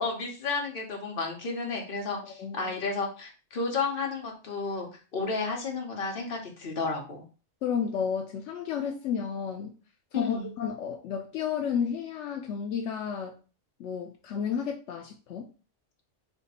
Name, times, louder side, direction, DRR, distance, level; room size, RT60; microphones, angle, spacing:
voice 1, 0.0-7.2 10.1-10.5, left 4 dB, 50° left, 0 dB, 1.2 m, -32 dB
voice 2, 2.2-2.7 7.6-9.7 10.1-13.4 13.8-15.5, left 7 dB, 80° left, 2 dB, 0.9 m, -32 dB
3.4 x 2.9 x 4.2 m, 0.34 s
omnidirectional pair, 1.2 m